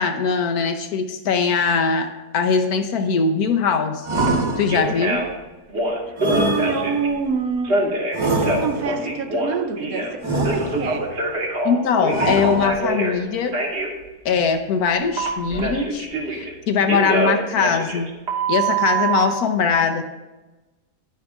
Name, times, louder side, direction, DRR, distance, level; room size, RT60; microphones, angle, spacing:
voice 1, 0.0-4.1 4.6-5.3 11.6-13.6 14.2-18.1 18.5-20.0, left 5 dB, 75° left, 1.3 m, -21 dB
sound 1, 4.0-5.1 6.2-7.2 8.1-9.1 10.2-11.1 12.1-13.0, right 1 dB, 20° right, 0.9 m, -24 dB
Telephone, 4.2-4.3 4.7-5.3 5.7-7.1 7.6-10.1 10.4-13.2 13.5-13.9 15.2-16.5 16.9-19.2, right 3 dB, 45° right, 1.7 m, -24 dB
voice 2, 6.0-7.8 8.2-11.1, right 6 dB, 70° right, 1.1 m, -27 dB
10.5 x 10.0 x 2.5 m
omnidirectional pair, 1.6 m